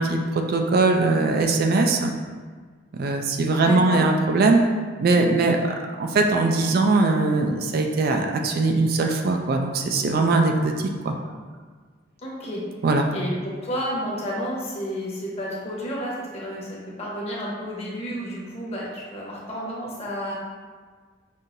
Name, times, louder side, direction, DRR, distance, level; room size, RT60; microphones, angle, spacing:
voice 1, 0.0-2.1 2.9-4.6 5.0-10.7 11.0-11.1 12.8-13.0, right 3 dB, 55° right, 3 dB, 0.4 m, -21 dB
voice 2, 3.6-4.0 12.2-12.7 13.1-20.4, equal, 35° left, -5 dB, 1.0 m, -31 dB
5.4 x 2.7 x 2.6 m, 1.5 s
head